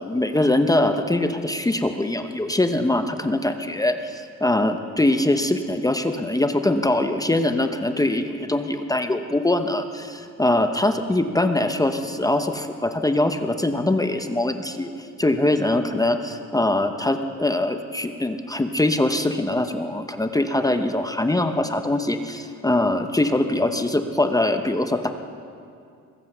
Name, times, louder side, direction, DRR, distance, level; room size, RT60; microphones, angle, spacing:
voice 1, 0.0-14.9 15.2-25.1, left 1 dB, 10° left, 7 dB, 0.8 m, -22 dB
22.0 x 8.1 x 6.7 m, 2.4 s
cardioid pair, 90°, 30 cm